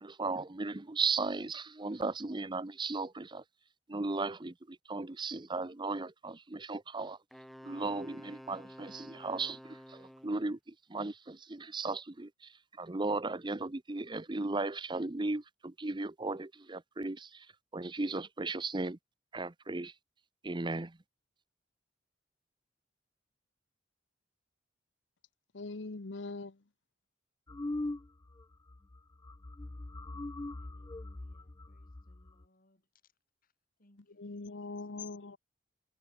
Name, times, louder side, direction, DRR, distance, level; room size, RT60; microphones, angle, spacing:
voice 1, 0.0-3.4 3.9-7.2 7.6-17.5 17.7-19.0 19.3-19.9 20.4-21.0, right 3 dB, 25° right, 0.8 m, -36 dB
Wind instrument woodwind instrument, 7.3-10.5, equal, ahead, 7.6 m, -51 dB
voice 2, 25.5-26.6 34.1-35.4, left 3 dB, 85° left, 1.0 m, -42 dB
sound 1, 27.5-28.4 28.7-29.0 29.2-32.4, left 2 dB, 20° left, 0.4 m, -41 dB
voice 3, 30.5-33.1 33.4-33.5 33.8-35.2, left 1 dB, 50° left, 3.9 m, -70 dB
head